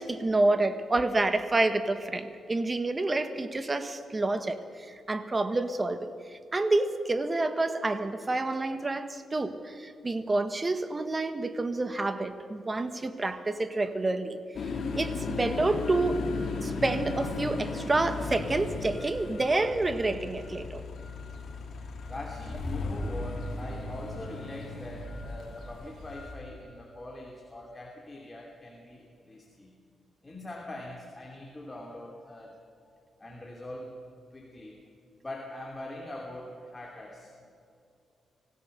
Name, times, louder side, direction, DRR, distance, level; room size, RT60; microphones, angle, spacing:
voice 1, 0.0-4.6 4.9-14.4 15.0-16.2 16.6-20.8, right 2 dB, 25° right, 10 dB, 1.6 m, -28 dB
sound 1, 14.5-26.3, left 3 dB, 65° left, 3.0 m, -36 dB
voice 2, 22.1-29.7 30.2-32.5 33.2-34.0 34.3-34.8 35.2-37.5, left 1 dB, 20° left, 0 dB, 2.9 m, -42 dB
25.5 x 16.5 x 6.8 m, 2.5 s
cardioid pair, 100°, 0 cm